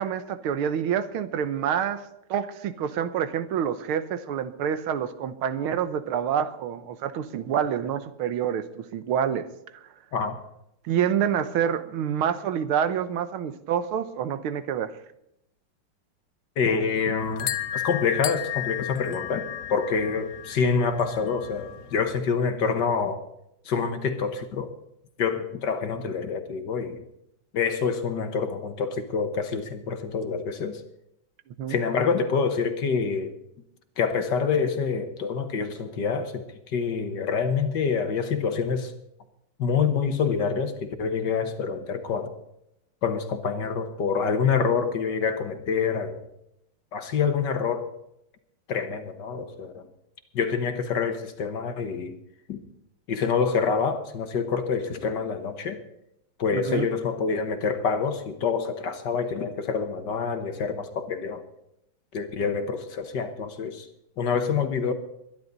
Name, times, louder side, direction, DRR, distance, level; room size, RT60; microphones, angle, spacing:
voice 1, 0.0-2.0 2.3-9.4 10.9-14.9 31.6-31.8 56.5-56.9, right 8 dB, 80° right, 12 dB, 1.8 m, -27 dB
voice 2, 16.6-23.2 23.7-24.7 25.2-27.0 27.5-30.8 31.7-33.3 34.0-38.9 39.6-42.3 43.0-46.2 46.9-47.9 48.7-49.9 50.3-52.2 52.5-52.6 53.1-55.8 56.4-61.4 62.1-63.9 64.2-64.9, left 5 dB, 60° left, 8 dB, 1.8 m, -26 dB
sound 1, 17.2-22.2, left 11 dB, 85° left, 0.7 m, -34 dB
22.0 x 11.0 x 4.0 m, 0.80 s
omnidirectional pair, 2.3 m